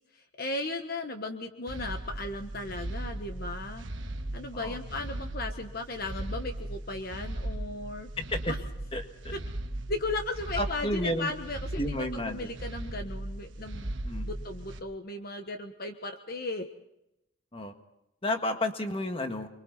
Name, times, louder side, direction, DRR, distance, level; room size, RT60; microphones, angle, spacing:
voice 1, 0.4-3.8 4.3-8.1 8.4-8.6 9.3-9.4 9.9-13.9 14.2-16.7, left 2 dB, 45° left, 5 dB, 1.4 m, -36 dB
sound 1, 1.7-14.8, right 1 dB, 60° right, 1.4 m, -38 dB
voice 2, 8.2-8.5 8.9-9.3 10.6-11.3 11.8-12.5 14.0-14.3 17.5-17.7 18.2-19.5, left 1 dB, 25° left, 5 dB, 1.8 m, -31 dB
29.5 x 23.0 x 4.1 m, 0.85 s
head